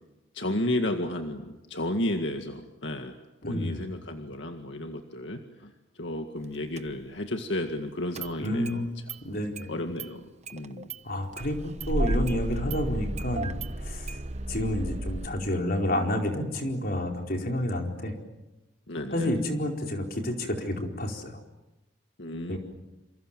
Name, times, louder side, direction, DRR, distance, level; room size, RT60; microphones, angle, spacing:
voice 1, 0.3-3.1 3.5-5.7 6.0-8.8 9.7-10.9 18.9-19.3 22.2-22.6, left 1 dB, 80° left, 5 dB, 2.0 m, -32 dB
voice 2, 3.4-3.8 8.4-8.9 9.2-9.7 11.0-11.6 11.9-13.5 13.8-14.2 14.5-18.1 19.1-21.3 22.5-22.6, left 1 dB, 55° left, 2 dB, 4.5 m, -29 dB
Engine starting, 6.8-6.9 8.1-8.8 9.1-9.2 9.6-9.7 10.0-10.1 10.5-11.0 11.3-15.3, right 1 dB, 35° right, 1.0 m, -32 dB
28.5 x 27.5 x 7.6 m, 1.0 s
head